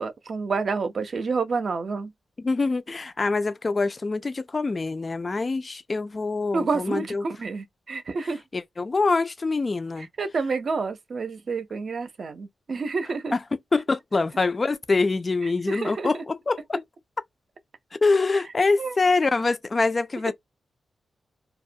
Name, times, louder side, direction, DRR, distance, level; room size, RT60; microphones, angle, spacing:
voice 1, 0.0-2.1 6.5-8.4 10.2-13.4 15.7-16.1 18.8-18.9, right 4 dB, 50° right, 0.5 m, -29 dB
voice 2, 2.4-7.3 8.2-10.1 13.3-13.4 13.7-16.8 18.0-20.3, left 3 dB, 30° left, 0.3 m, -25 dB
2.2 x 2.1 x 2.6 m
wide cardioid pair, 120°, 0 cm